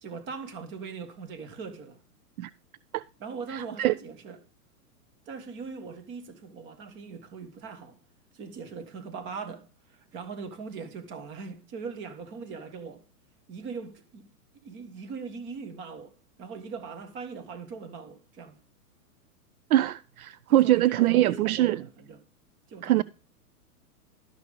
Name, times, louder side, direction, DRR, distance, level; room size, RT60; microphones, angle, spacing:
voice 1, 0.0-2.0 3.2-4.4 5.3-8.0 8.3-13.0 13.5-14.2 14.5-16.1 16.4-18.6 20.5-22.2 22.7-23.0, right 5 dB, 25° right, 1.7 m, -40 dB
voice 2, 3.5-3.9 19.7-21.8 22.8-23.0, right 14 dB, 70° right, 0.5 m, -23 dB
12.5 x 6.1 x 5.1 m
hypercardioid pair, 150°, 46 cm